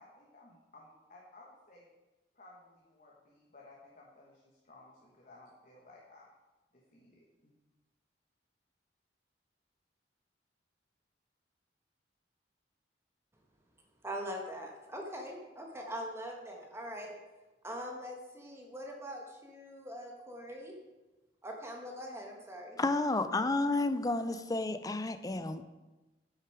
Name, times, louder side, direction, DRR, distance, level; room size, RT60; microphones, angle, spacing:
voice 1, 0.0-1.9 2.3-6.3 6.7-7.5, left 2 dB, 50° left, -3 dB, 1.5 m, -57 dB
voice 2, 14.0-17.1 17.6-20.7 21.4-22.8, equal, 15° right, 1 dB, 1.3 m, -42 dB
voice 3, 22.8-25.6, left 2 dB, 20° left, 11 dB, 0.5 m, -31 dB
9.4 x 6.5 x 4.9 m, 1.1 s
head